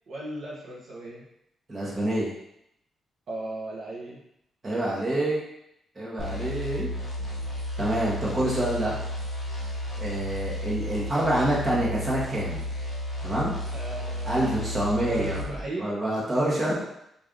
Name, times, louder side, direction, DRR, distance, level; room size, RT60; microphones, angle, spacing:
voice 1, 0.1-1.2 3.3-4.2 6.2-6.4 13.7-14.6 15.0-16.0, right 2 dB, 60° right, -4 dB, 0.7 m, -36 dB
voice 2, 1.7-2.3 4.6-5.4 5.9-6.9 7.8-8.9 10.0-12.6 13.2-13.5 14.2-15.4 15.8-16.8, right 1 dB, 25° right, -6 dB, 1.2 m, -27 dB
sound 1, 6.2-15.6, left 1 dB, 25° left, 1.0 m, -33 dB
3.2 x 2.5 x 3.7 m, 0.80 s
cardioid pair, 115°, 0 cm